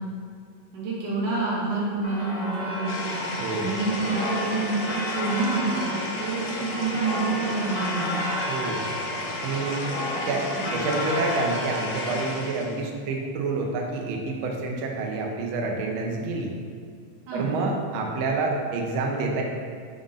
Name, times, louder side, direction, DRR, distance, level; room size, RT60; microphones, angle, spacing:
voice 1, 0.7-8.2 10.1-10.7 17.3-17.5, right 3 dB, 50° right, -6 dB, 1.4 m, -28 dB
sound 1, 2.0-12.4, left 1 dB, 55° left, 2.0 m, -32 dB
sound 2, 2.9-12.9, left 2 dB, 75° left, 2.1 m, -35 dB
voice 2, 8.5-8.8 9.4-9.9 10.3-10.4 10.7-16.5 17.3-19.4, right 3 dB, 90° right, 0 dB, 1.1 m, -28 dB
5.0 x 3.7 x 5.5 m, 2.1 s
omnidirectional pair, 3.3 m